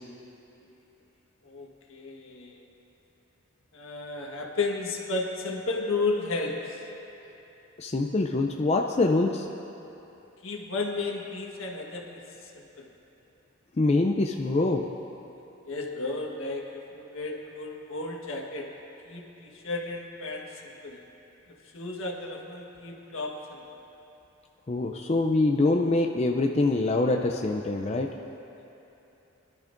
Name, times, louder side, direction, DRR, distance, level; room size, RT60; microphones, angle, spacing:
voice 1, 1.4-2.7 3.7-6.8 10.4-12.9 15.6-18.7 19.1-21.0 21.6-23.6, left 3 dB, 80° left, 0 dB, 1.4 m, -33 dB
voice 2, 7.8-9.5 13.8-14.9 24.7-28.1, left 2 dB, 30° left, 2 dB, 0.4 m, -24 dB
21.5 x 11.5 x 2.6 m, 3.0 s
head